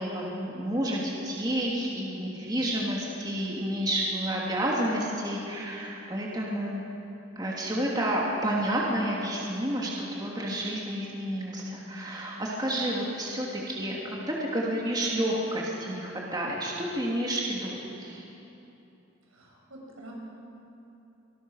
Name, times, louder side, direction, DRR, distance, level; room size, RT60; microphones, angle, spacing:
voice 1, 0.0-6.8 7.4-18.2, right 1 dB, 20° right, -4 dB, 2.8 m, -30 dB
voice 2, 19.3-20.1, right 1 dB, 85° right, -2 dB, 6.4 m, -47 dB
25.0 x 19.5 x 6.5 m, 2.9 s
head